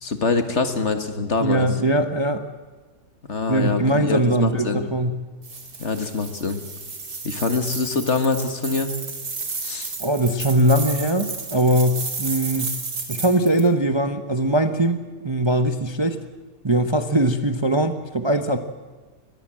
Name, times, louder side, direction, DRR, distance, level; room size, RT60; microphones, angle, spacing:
voice 1, 0.0-1.7 3.3-4.8 5.8-6.6 7.2-8.9 9.6-9.9, left 4 dB, 50° left, 9 dB, 1.9 m, -24 dB
voice 2, 1.4-2.4 3.5-5.2 10.0-12.8 13.1-15.0 15.2-16.2 16.6-18.6, right 1 dB, 20° right, 9 dB, 0.9 m, -21 dB
sound 1, 5.4-13.7, right 4 dB, 75° right, 3.3 m, -32 dB
23.0 x 20.0 x 7.6 m, 1.3 s
omnidirectional pair, 1.6 m